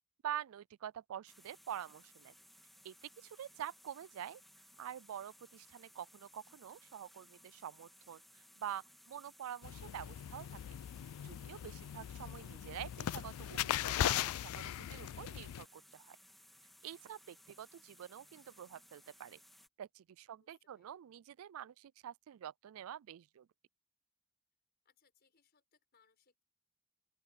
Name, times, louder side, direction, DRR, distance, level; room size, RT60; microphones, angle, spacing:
voice 1, 0.2-2.3 2.8-4.4 4.8-10.6 11.2-16.2 16.8-19.4 19.8-23.5, right 10 dB, 80° right, 0.3 m, -47 dB
sound 1, 1.3-19.7, equal, ahead, 2.5 m, -62 dB
Room Tone, 9.6-15.6, left 11 dB, 90° left, 0.3 m, -39 dB
voice 2, 20.4-20.9 24.8-26.4, left 6 dB, 50° left, 5.4 m, -73 dB
open air
head